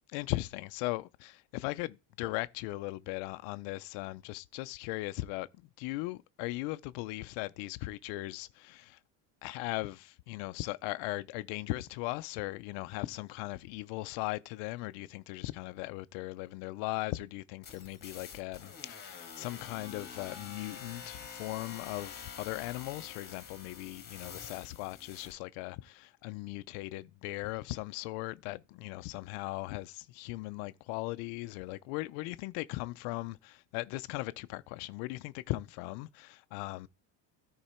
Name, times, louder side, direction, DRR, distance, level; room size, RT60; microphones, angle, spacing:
voice 1, 0.1-9.0 9.4-36.9, left 20 dB, 80° left, 0.6 m, -38 dB
sound 1, 17.6-25.3, left 6 dB, 20° left, 1.9 m, -47 dB
13.0 x 4.7 x 4.3 m
cardioid pair, 175°, 45 cm